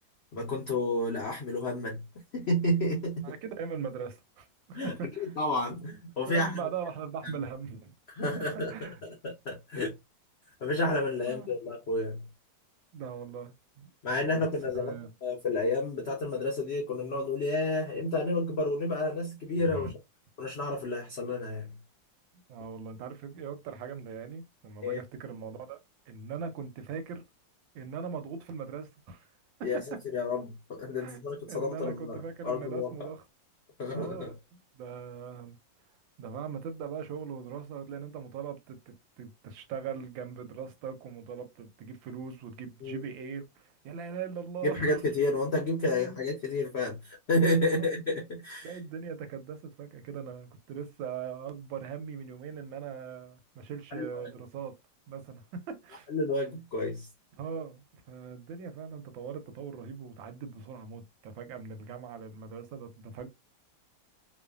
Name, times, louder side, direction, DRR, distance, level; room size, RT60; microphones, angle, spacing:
voice 1, 0.3-2.0 2.3-3.3 4.7-6.6 8.1-9.9 10.6-12.2 14.0-14.9 15.2-19.9 20.4-21.7 24.8-25.0 29.6-33.1 33.8-34.3 42.8-43.0 44.6-48.8 53.9-54.3 56.1-57.1, left 2 dB, 80° left, 0.6 m, -30 dB
voice 2, 3.2-5.3 6.2-7.9 8.7-8.9 9.7-9.9 11.3-11.5 12.9-13.9 14.2-14.4 14.7-15.1 19.7-19.9 22.5-25.8 26.1-27.2 27.7-29.3 29.7-29.8 31.0-31.2 31.5-33.2 33.9-35.6 36.2-45.0 45.9-46.2 47.7-47.9 48.6-54.7 55.1-56.1 57.4-63.3, right 6 dB, 90° right, 1.4 m, -40 dB
3.1 x 2.2 x 2.3 m
omnidirectional pair, 2.0 m